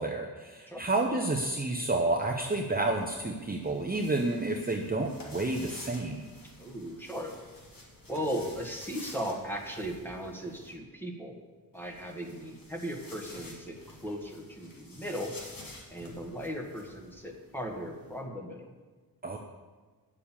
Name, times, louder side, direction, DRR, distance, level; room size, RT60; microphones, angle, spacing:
voice 1, 0.0-6.2 19.2-19.4, right 2 dB, 20° right, 1 dB, 0.8 m, -30 dB
sound 1, 2.6-10.7 11.7-18.2, left 1 dB, 55° left, 2.2 m, -50 dB
voice 2, 6.6-7.3 8.1-11.4 11.7-15.3 15.9-18.7, equal, 5° left, 1 dB, 1.5 m, -37 dB
9.8 x 6.7 x 7.3 m, 1.4 s
wide cardioid pair, 150°, 40 cm